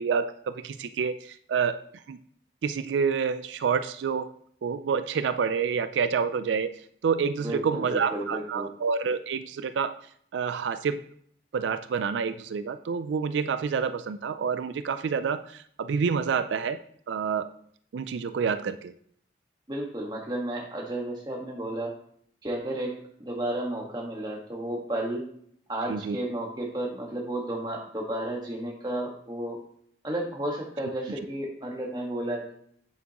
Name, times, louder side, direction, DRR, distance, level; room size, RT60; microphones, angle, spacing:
voice 1, 0.0-1.8 2.1-2.2 2.6-4.3 4.6-9.9 10.3-11.0 11.5-16.8 17.1-17.5 17.9-18.9 25.9-26.2, right 6 dB, 90° right, 12 dB, 0.4 m, -28 dB
voice 2, 7.4-8.7 19.7-21.9 22.4-25.3 25.7-29.6 30.0-32.5, right 1 dB, 25° right, -1 dB, 1.5 m, -32 dB
8.4 x 7.3 x 3.0 m, 0.64 s
head